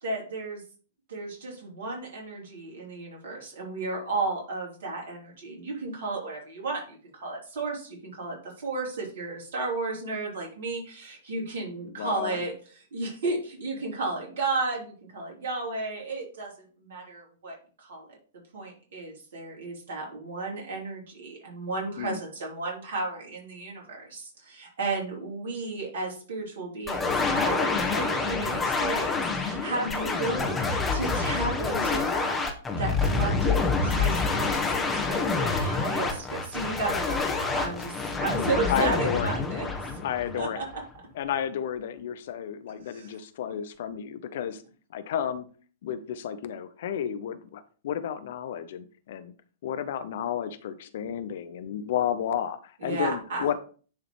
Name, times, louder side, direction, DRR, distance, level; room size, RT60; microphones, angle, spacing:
voice 1, 0.0-0.6 1.1-16.5 16.8-18.2 18.5-32.3 32.8-39.7 40.3-40.6 42.9-43.1 52.8-53.4, right 3 dB, 55° right, -2 dB, 3.3 m, -33 dB
voice 2, 11.8-12.4 22.0-22.2 29.8-30.2 38.7-39.4 40.0-40.6 41.1-44.6 44.9-45.5 45.8-49.3 49.6-53.6, left 9 dB, 55° left, 11 dB, 0.7 m, -32 dB
sound 1, 26.9-40.7, left 4 dB, 10° left, 1.2 m, -27 dB
10.0 x 3.8 x 3.1 m, 0.40 s
figure-of-eight pair, 105°, 0 cm